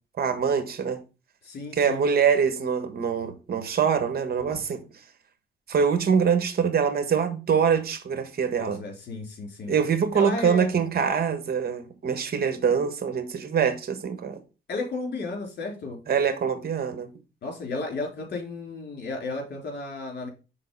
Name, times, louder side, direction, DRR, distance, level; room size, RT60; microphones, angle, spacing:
voice 1, 0.2-1.0 1.7-4.8 5.7-8.8 9.7-14.4 16.1-17.1, right 6 dB, 50° right, 1.4 m, -24 dB
voice 2, 1.4-2.0 8.6-9.7 10.1-10.7 14.7-16.0 17.4-20.3, left 3 dB, 55° left, 3.3 m, -33 dB
5.9 x 3.9 x 5.3 m
cardioid pair, 90°, 20 cm